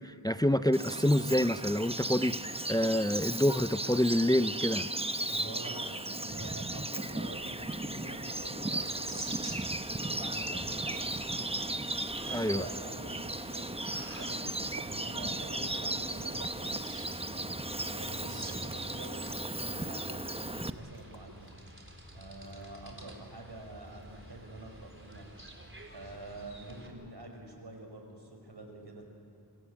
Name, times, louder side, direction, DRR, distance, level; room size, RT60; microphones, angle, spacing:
voice 1, 0.0-2.4 2.7-4.9 12.3-12.7, left 1 dB, 10° left, 12 dB, 0.6 m, -27 dB
Bird vocalization bird call bird song, 0.7-20.7, right 2 dB, 15° right, 0.9 m, -36 dB
voice 2, 5.3-11.2 12.2-21.5 22.1-25.3 25.9-29.0, right 1 dB, 85° right, 3 dB, 5.4 m, -47 dB
sound 1, 7.0-26.9, right 1 dB, 30° right, 4.1 m, -49 dB
sound 2, 14.7-15.2 15.7-16.8 17.1-18.9 19.4-19.5 19.6-20.3 20.6-20.7 20.9-22.0 22.4-23.0 23.8-24.3, right 3 dB, 55° right, 1.7 m, -55 dB
27.5 x 25.0 x 8.4 m, 2.7 s
wide cardioid pair, 45°, 40 cm